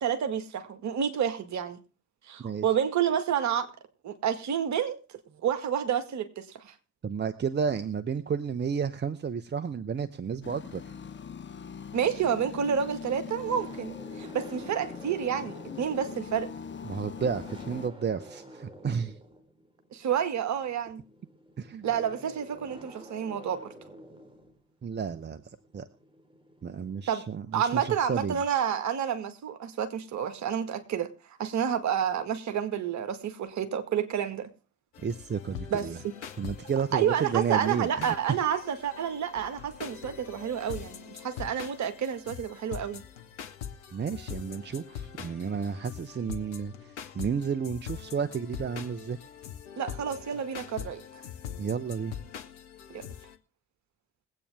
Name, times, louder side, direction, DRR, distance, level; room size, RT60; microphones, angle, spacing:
voice 1, 0.0-1.8 2.3-3.7 4.0-5.0 5.4-6.7 11.9-16.5 19.9-21.0 21.8-23.6 27.1-27.2 27.5-31.1 31.4-34.5 35.7-36.0 36.9-43.0 49.8-51.0 52.9-53.0, right 8 dB, 50° right, 1.8 m, -29 dB
voice 2, 7.0-10.8 16.8-19.1 21.6-21.8 24.8-25.4 25.7-25.9 26.6-28.4 35.0-36.0 36.4-38.4 43.9-49.2 51.6-52.1, right 6 dB, 30° right, 0.9 m, -32 dB
sound 1, 10.4-17.9, left 6 dB, 30° left, 1.0 m, -41 dB
sound 2, 12.2-27.2, right 1 dB, 15° right, 4.3 m, -50 dB
sound 3, 34.9-53.4, left 9 dB, 80° left, 0.9 m, -43 dB
22.0 x 8.6 x 3.6 m
figure-of-eight pair, 45°, 35 cm